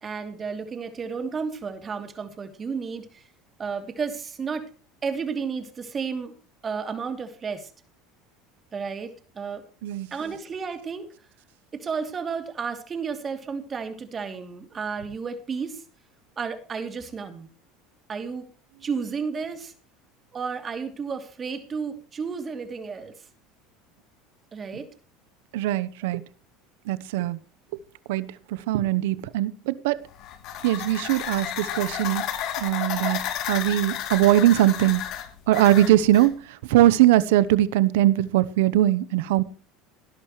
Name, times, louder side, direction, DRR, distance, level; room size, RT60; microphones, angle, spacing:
voice 1, 0.0-3.2 3.6-4.7 5.0-6.3 6.6-7.7 8.7-9.6 10.1-11.1 11.7-15.8 16.4-17.5 18.1-18.4 18.8-19.7 20.3-23.1 24.5-24.9, right 5 dB, 30° right, 2.9 m, -32 dB
voice 2, 25.5-26.2 26.9-27.4 28.1-30.0 30.6-32.3 32.6-35.0 35.5-39.4, right 14 dB, 80° right, 0.9 m, -21 dB
sound 1, 30.1-36.3, left 10 dB, 60° left, 2.8 m, -32 dB
18.5 x 11.5 x 3.2 m
supercardioid pair, 105°, 0 cm